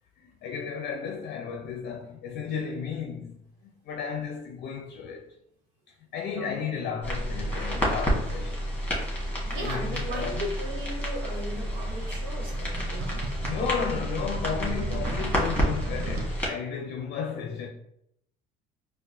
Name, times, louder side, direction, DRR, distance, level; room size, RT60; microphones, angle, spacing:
voice 1, 0.2-5.3 5.9-8.7 9.5-10.5 13.5-17.7, left 7 dB, 60° left, 0.5 m, -34 dB
sound 1, 7.0-16.5, equal, 10° left, 1.2 m, -30 dB
voice 2, 9.4-14.0, right 1 dB, 85° right, 1.0 m, -37 dB
sound 2, 10.7-16.3, right 2 dB, 55° right, 0.7 m, -38 dB
4.6 x 2.1 x 2.6 m
supercardioid pair, 85°, 19 cm